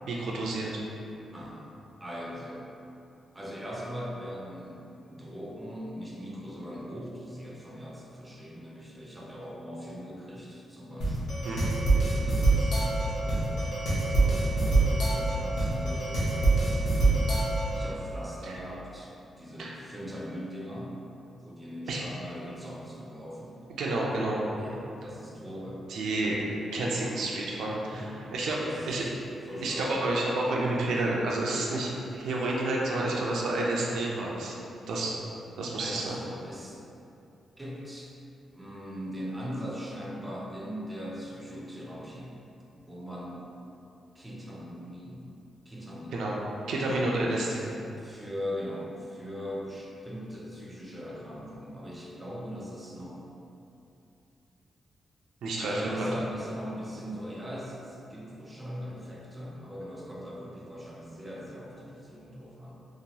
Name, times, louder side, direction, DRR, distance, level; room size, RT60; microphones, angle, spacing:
voice 1, 0.1-0.7 11.4-11.6 18.4-18.6 19.6-19.8 21.9-22.0 23.8-24.4 25.9-29.0 29.6-34.6 34.9-35.2 35.6-36.2 46.1-46.3 46.7-47.7 55.4-55.7 56.0-56.1, right 2 dB, 85° right, -3 dB, 0.4 m, -30 dB
voice 2, 1.3-1.7 2.0-2.7 3.3-11.4 12.1-13.7 14.0-17.3 17.7-21.0 21.4-23.6 24.6-25.9 27.9-28.2 28.6-29.2 29.5-29.8 35.8-36.8 37.6-38.1 38.5-42.4 42.7-43.5 44.1-45.4 45.7-46.3 46.8-53.2 55.6-62.7, equal, 10° right, -4 dB, 0.4 m, -40 dB
sound 1, 11.0-17.9, right 2 dB, 70° left, 0.8 m, -25 dB
2.9 x 2.2 x 2.8 m, 2.8 s
wide cardioid pair, 150°, 0 cm